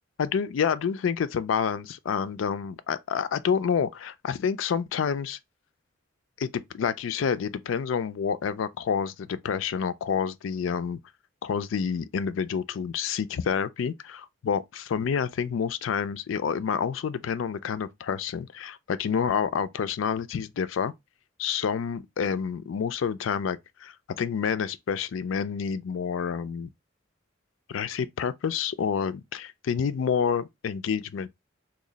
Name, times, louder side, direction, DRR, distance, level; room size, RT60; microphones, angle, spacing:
voice 1, 0.2-5.4 6.4-11.0 11.4-20.9 21.4-26.7 27.7-31.3, left 7 dB, 85° left, 0.4 m, -28 dB
3.0 x 2.3 x 3.8 m
head